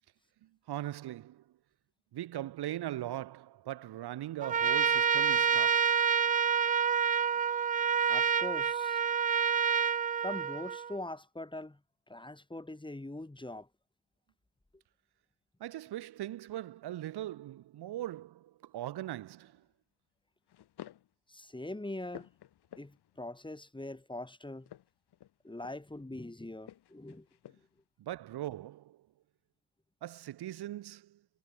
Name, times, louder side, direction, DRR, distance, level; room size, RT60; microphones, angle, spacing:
voice 1, 0.4-1.4 2.1-5.9 15.6-19.6 28.0-29.1 30.0-31.2, right 13 dB, 55° right, 2.7 m, -40 dB
Trumpet, 4.4-10.9, right 7 dB, 20° right, 0.4 m, -28 dB
voice 2, 8.1-9.0 10.2-11.8 12.1-13.7 21.3-22.3 22.8-24.7 25.4-27.3, left 2 dB, 10° left, 5.0 m, -42 dB
sound 1, 19.3-19.6 20.5-21.1 21.6-23.2 24.5-26.0 26.6-27.8, left 12 dB, 50° left, 6.5 m, -53 dB
figure-of-eight pair, 55°, 48 cm